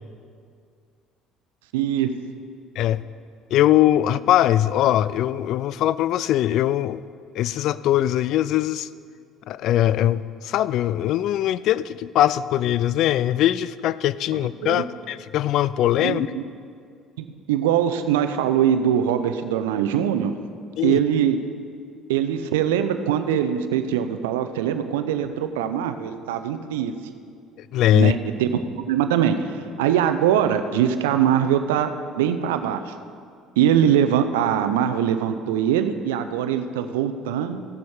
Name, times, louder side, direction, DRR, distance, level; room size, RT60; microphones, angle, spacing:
voice 1, 1.7-2.2 14.6-14.8 16.0-16.4 17.2-20.3 20.8-21.4 22.1-27.0 27.9-32.9 33.6-37.6, right 9 dB, 85° right, 9 dB, 0.6 m, -22 dB
voice 2, 3.5-7.0 7.3-8.9 9.5-16.3 20.8-21.0 27.6-28.1, left 12 dB, 65° left, 17 dB, 0.3 m, -21 dB
15.5 x 6.9 x 4.9 m, 2.3 s
hypercardioid pair, 65°, 0 cm